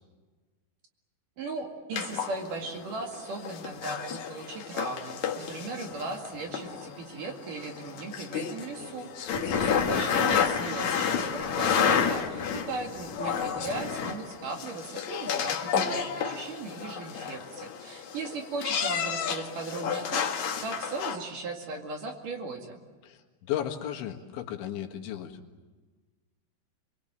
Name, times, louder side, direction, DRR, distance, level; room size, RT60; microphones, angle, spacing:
voice 1, 1.4-9.1 9.5-22.8, right 3 dB, 50° right, 3 dB, 3.3 m, -37 dB
sound 1, 1.9-21.2, left 7 dB, 55° left, 2.1 m, -31 dB
voice 2, 9.4-9.7 23.0-25.4, left 11 dB, 85° left, 3 dB, 4.1 m, -35 dB
27.5 x 22.5 x 8.9 m, 1.3 s
omnidirectional pair, 5.3 m